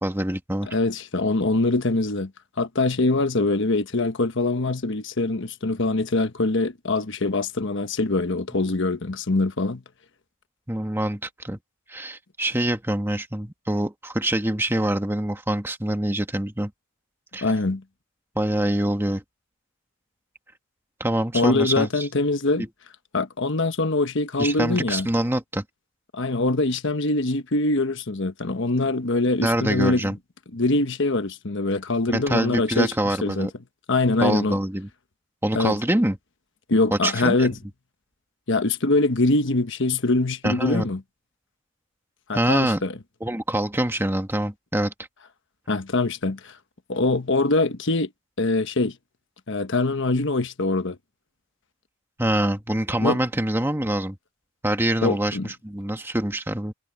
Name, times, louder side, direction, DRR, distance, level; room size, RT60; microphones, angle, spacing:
voice 1, 0.0-0.7 10.7-11.6 11.9-16.7 17.3-17.4 18.3-19.2 21.0-22.1 22.6-22.7 24.4-25.6 29.4-30.2 32.1-33.5 34.2-34.9 35.4-36.2 36.9-37.5 40.4-40.9 42.3-42.8 43.2-44.9 52.2-54.2 54.6-56.7, right 1 dB, 10° right, 1.4 m, -25 dB
voice 2, 0.7-2.3 2.6-9.8 17.4-17.8 21.3-22.7 23.1-25.1 26.1-30.1 30.5-33.5 33.9-34.6 35.5-35.8 36.7-37.6 38.5-41.0 42.3-42.9 45.7-46.6 46.9-48.1 48.4-49.0 49.5-51.0 53.0-53.2 55.0-55.5, left 2 dB, 55° left, 1.2 m, -23 dB
head